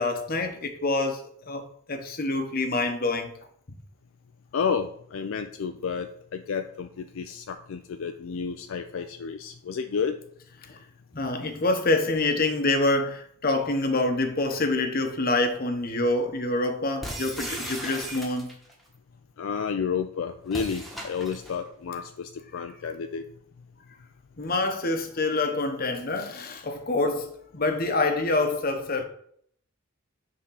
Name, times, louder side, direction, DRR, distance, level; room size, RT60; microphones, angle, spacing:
voice 1, 0.0-3.3 10.7-10.8 11.1-18.5 24.4-29.0, left 2 dB, 45° left, 0.9 m, -26 dB
voice 2, 4.5-10.2 19.4-23.2, left 6 dB, 70° left, 0.4 m, -31 dB
sound 1, 17.0-18.7 20.5-21.6, right 1 dB, ahead, 1.2 m, -36 dB
6.7 x 3.7 x 5.5 m
head